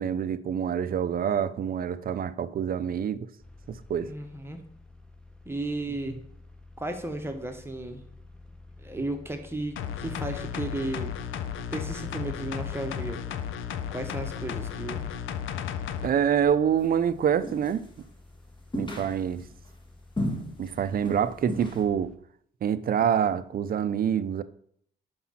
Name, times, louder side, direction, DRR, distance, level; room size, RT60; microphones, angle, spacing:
voice 1, 0.0-3.3 3.7-4.1 16.0-17.9 18.7-19.4 20.6-22.1 22.6-24.4, right 8 dB, 45° right, 0.5 m, -26 dB
sound 1, 3.4-22.2, left 2 dB, 5° left, 0.9 m, -51 dB
voice 2, 4.0-4.6 5.4-6.2 6.8-8.0 8.8-11.1 11.7-13.2 13.9-15.1, right 2 dB, 10° right, 1.1 m, -34 dB
sound 2, 9.8-16.1 16.4-16.5, left 8 dB, 85° left, 0.6 m, -34 dB
sound 3, 17.4-18.0 18.7-19.6 20.2-20.7 21.0-21.2 21.5-21.8, left 1 dB, 25° left, 1.6 m, -33 dB
5.7 x 5.2 x 5.7 m
cardioid pair, 90°, 20 cm